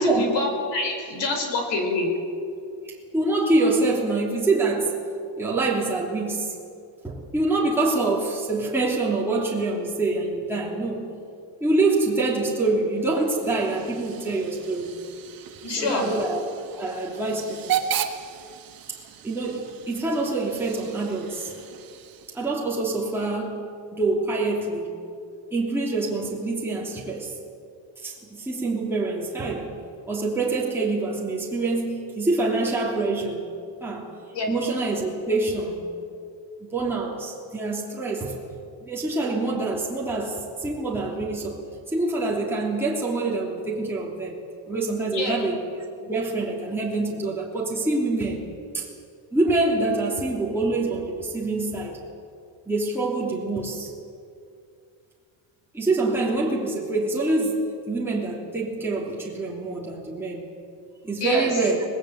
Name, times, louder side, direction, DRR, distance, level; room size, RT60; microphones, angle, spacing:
voice 1, 0.0-2.1 15.6-16.1 34.3-34.5 45.1-45.4 61.2-61.5, left 2 dB, 60° left, 4 dB, 5.4 m, -26 dB
voice 2, 2.8-4.9 5.4-6.5 7.0-11.1 11.6-14.9 15.7-16.4 16.7-17.8 19.2-21.5 22.3-23.6 23.9-25.0 25.5-27.3 28.0-29.7 30.1-33.5 33.8-34.1 34.5-35.8 36.7-38.4 38.8-41.6 41.9-44.4 44.7-45.6 46.0-48.5 48.7-48.9 49.3-52.0 52.7-53.9 55.7-60.5 61.0-61.8, right 2 dB, 5° right, -4 dB, 3.0 m, -25 dB
Hiss / Train / Alarm, 13.0-22.6, right 9 dB, 45° right, 1.6 m, -35 dB
25.0 x 20.0 x 8.0 m, 2.4 s
cardioid pair, 170°, 48 cm